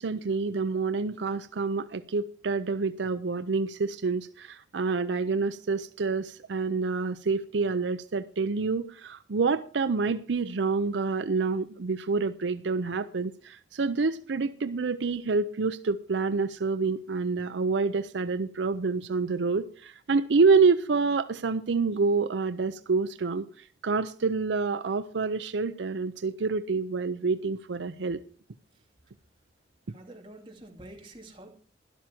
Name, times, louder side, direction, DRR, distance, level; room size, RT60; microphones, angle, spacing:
voice 1, 0.0-28.2, right 4 dB, 80° right, 0.6 m, -27 dB
voice 2, 29.9-31.6, right 1 dB, 25° right, 2.5 m, -48 dB
12.0 x 11.5 x 4.4 m
head